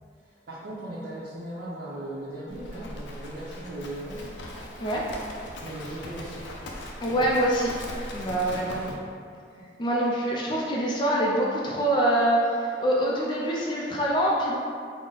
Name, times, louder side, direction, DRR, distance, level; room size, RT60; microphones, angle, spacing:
voice 1, 0.2-4.3 5.6-6.5 8.4-9.0 9.5-9.6, right 1 dB, 80° right, -8 dB, 0.6 m, -38 dB
Livestock farm animals working animals, 2.5-9.0, left 1 dB, 90° left, 0.5 m, -39 dB
voice 2, 7.0-7.7 8.1-8.6 9.8-14.6, right 1 dB, 25° left, -4 dB, 0.3 m, -24 dB
3.8 x 2.0 x 3.8 m, 2.3 s
head